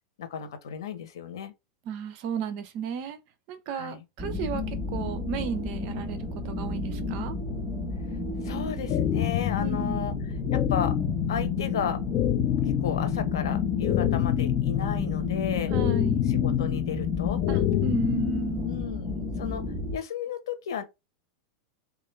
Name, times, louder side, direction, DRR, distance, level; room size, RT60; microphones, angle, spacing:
voice 1, 0.2-1.5 3.7-4.0 8.4-10.1 10.5-11.0 11.3-12.0 12.8-15.7 16.3-17.4 18.6-19.7 19.9-20.8, left 8 dB, 90° left, 0.9 m, -34 dB
voice 2, 1.9-3.2 3.5-7.3 9.6-10.1 15.7-16.2 17.5-18.7, right 7 dB, 50° right, 0.7 m, -34 dB
sound 1, 4.2-20.0, left 2 dB, ahead, 1.1 m, -33 dB
sound 2, 8.9-18.9, left 13 dB, 35° left, 0.4 m, -27 dB
3.6 x 2.5 x 3.2 m
supercardioid pair, 145°, 2 cm